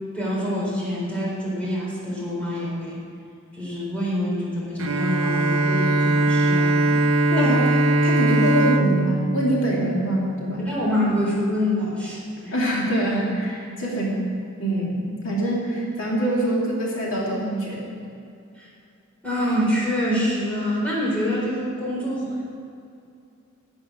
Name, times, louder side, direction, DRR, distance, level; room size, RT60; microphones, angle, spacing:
voice 1, 0.1-3.0 3.5-7.0 7.4-7.5 10.6-12.5 18.6-18.7 19.2-22.4, equal, 5° left, -6 dB, 4.1 m, -26 dB
Bowed string instrument, 4.8-10.5, right 2 dB, 70° right, 0.7 m, -21 dB
voice 2, 7.3-10.6 12.5-14.2 14.6-17.9, right 1 dB, 65° left, -4 dB, 2.7 m, -24 dB
11.0 x 7.9 x 9.6 m, 2.5 s
head